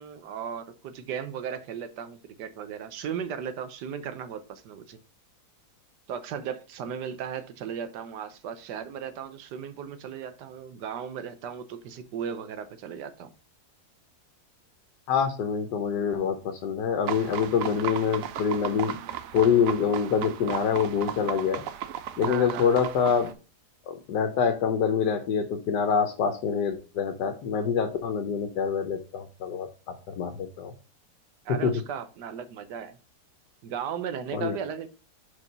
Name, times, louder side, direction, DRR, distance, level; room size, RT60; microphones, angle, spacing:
voice 1, 0.0-5.0 6.1-13.3 22.2-22.7 31.4-33.0 33.6-34.9, right 8 dB, 85° right, 1.4 m, -36 dB
voice 2, 15.1-19.0 19.3-21.6 22.2-23.3 23.9-29.7 30.1-30.7 31.6-31.7 34.3-34.6, left 6 dB, 80° left, 1.4 m, -26 dB
sound 1, 17.1-23.3, right 10 dB, 70° right, 0.9 m, -35 dB
5.0 x 4.8 x 5.4 m
omnidirectional pair, 1.8 m